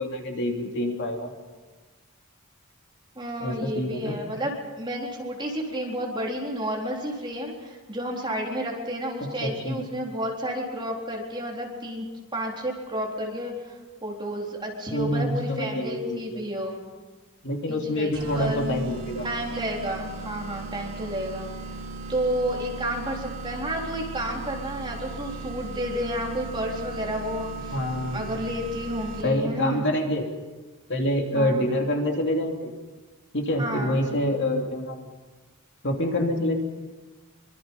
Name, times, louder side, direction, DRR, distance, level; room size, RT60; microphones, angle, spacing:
voice 1, 0.0-1.3 3.4-4.2 9.2-9.8 14.9-16.4 17.4-19.2 27.7-28.2 29.2-30.3 30.9-32.7 33.3-35.1 35.8-36.5, left 1 dB, 55° left, 2 dB, 3.0 m, -26 dB
voice 2, 3.2-4.5 4.8-12.0 12.3-16.8 17.7-18.6 19.2-21.5 22.1-27.7 28.1-29.8 31.3-31.7 33.6-34.1, equal, 20° right, -1 dB, 4.0 m, -31 dB
sound 1, 18.1-29.5, right 2 dB, 80° right, 3.0 m, -37 dB
24.5 x 24.5 x 5.6 m, 1.3 s
head